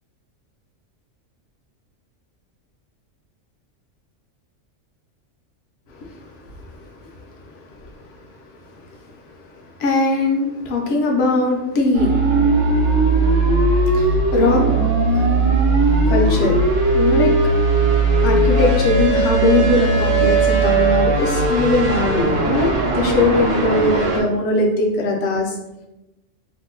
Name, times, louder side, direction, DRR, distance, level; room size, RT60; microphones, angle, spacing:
voice 1, 5.9-8.3 8.6-9.0 9.6-12.1 13.0-13.3 13.8-14.6 15.1-15.2 16.1-16.6 16.9-17.3 18.2-25.6, left 2 dB, 60° left, 0 dB, 0.9 m, -21 dB
sound 1, 11.9-24.2, right 2 dB, 65° right, 1.0 m, -18 dB
2.8 x 2.1 x 3.7 m, 0.98 s
omnidirectional pair, 1.3 m